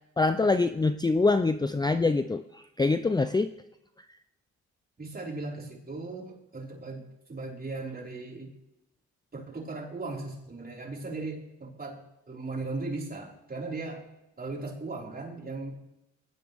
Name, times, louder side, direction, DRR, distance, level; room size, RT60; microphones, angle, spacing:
voice 1, 0.2-3.5, left 3 dB, 15° left, 10 dB, 0.6 m, -25 dB
voice 2, 5.0-8.5 9.3-14.0 14.4-15.7, right 3 dB, 30° right, -2 dB, 5.2 m, -37 dB
21.5 x 18.0 x 3.6 m, 0.88 s
cardioid pair, 90°, 30 cm